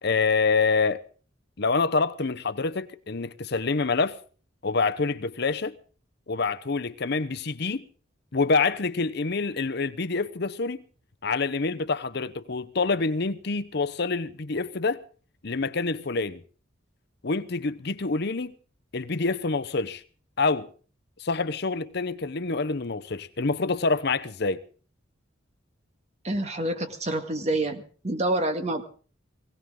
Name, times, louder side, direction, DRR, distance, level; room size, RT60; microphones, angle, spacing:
voice 1, 0.0-1.0 1.6-4.2 4.6-5.7 6.3-7.8 8.3-10.8 11.2-15.0 15.4-16.4 17.2-18.5 18.9-20.0 20.4-20.7 21.2-24.6, left 4 dB, 55° left, 0.8 m, -26 dB
voice 2, 26.2-28.8, right 1 dB, 35° right, 1.9 m, -27 dB
20.0 x 17.5 x 3.8 m
head